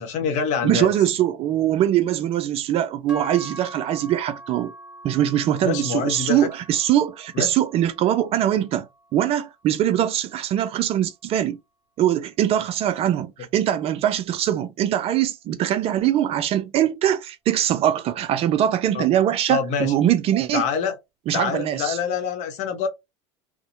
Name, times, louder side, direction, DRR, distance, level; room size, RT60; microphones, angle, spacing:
voice 1, 0.0-0.9 5.6-6.5 7.3-7.6 18.9-19.1 19.5-19.9 20.5-20.9 21.3-22.9, left 6 dB, 50° left, 0.9 m, -25 dB
voice 2, 0.6-4.7 5.0-8.9 9.1-11.6 12.0-20.7 21.3-22.0, right 11 dB, 40° right, 0.4 m, -22 dB
sound 1, 3.1-11.3, right 1 dB, 5° right, 1.0 m, -44 dB
2.7 x 2.1 x 2.5 m
hypercardioid pair, 85°, 15 cm